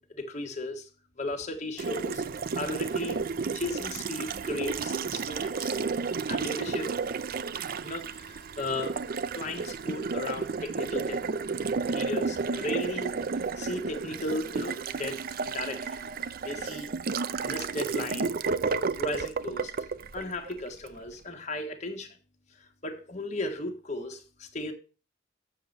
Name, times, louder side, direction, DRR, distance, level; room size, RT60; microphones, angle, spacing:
voice 1, 0.1-0.9 1.2-2.2 2.5-3.2 3.5-5.8 6.3-7.0 7.8-9.0 9.3-11.2 11.9-15.2 15.5-16.0 16.4-16.9 17.4-18.3 19.0-19.7 20.1-22.2 22.8-24.7, left 2 dB, 35° left, 1.4 m, -35 dB
Water tap faucet, 1.8-20.9, right 4 dB, 50° right, 0.5 m, -32 dB
7.5 x 7.1 x 5.3 m
head